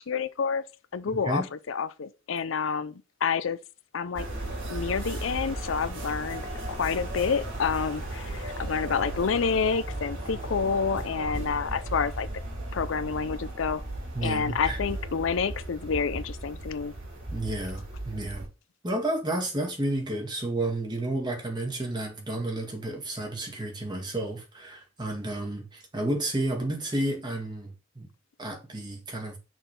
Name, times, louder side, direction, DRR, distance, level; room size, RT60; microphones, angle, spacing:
voice 1, 0.1-0.6 0.9-3.6 3.9-4.3 4.7-12.3 12.7-13.8 14.2-16.9, left 6 dB, 80° left, 0.5 m, -28 dB
sound 1, 4.1-18.4, right 1 dB, 80° right, 3.6 m, -36 dB
voice 2, 14.1-14.8 17.3-18.5 18.8-28.1 28.4-29.4, right 1 dB, 20° right, 2.0 m, -31 dB
6.2 x 4.0 x 5.3 m
head